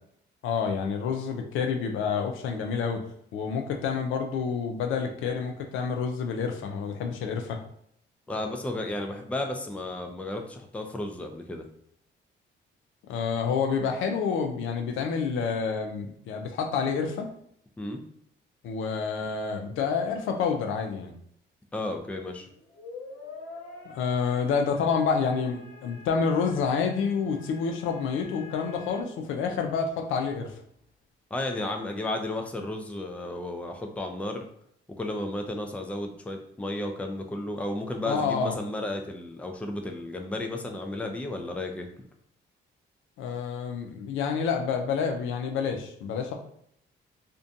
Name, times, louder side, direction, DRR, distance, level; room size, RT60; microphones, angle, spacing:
voice 1, 0.4-3.0 3.3-7.6 13.1-17.3 18.6-21.1 23.9-30.5 38.1-38.5 43.2-46.3, left 6 dB, 85° left, 4 dB, 0.4 m, -28 dB
voice 2, 8.3-11.6 17.8-18.0 21.7-22.5 31.3-34.5 35.0-42.0, left 1 dB, 5° left, 4 dB, 0.3 m, -33 dB
sound 1, 22.5-29.0, left 4 dB, 60° left, 0.8 m, -46 dB
2.5 x 2.2 x 2.6 m, 0.69 s
cardioid pair, 90°, 20 cm